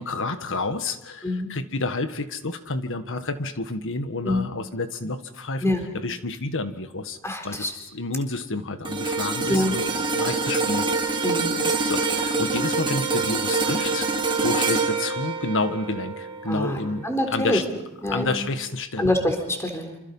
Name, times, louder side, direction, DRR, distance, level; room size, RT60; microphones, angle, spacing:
voice 1, 0.0-5.6 6.0-7.2 7.4-9.8 10.1-10.9 11.8-17.6 18.1-19.1, left 3 dB, 60° left, 9 dB, 1.7 m, -29 dB
voice 2, 7.2-7.7 9.5-9.7 11.2-11.6 16.5-17.6 18.0-18.5 19.0-20.0, left 1 dB, 15° left, 4 dB, 3.9 m, -25 dB
sound 1, 8.8-17.2 17.6-17.8, right 3 dB, 20° right, 1.9 m, -26 dB
27.0 x 27.0 x 5.6 m, 0.82 s
head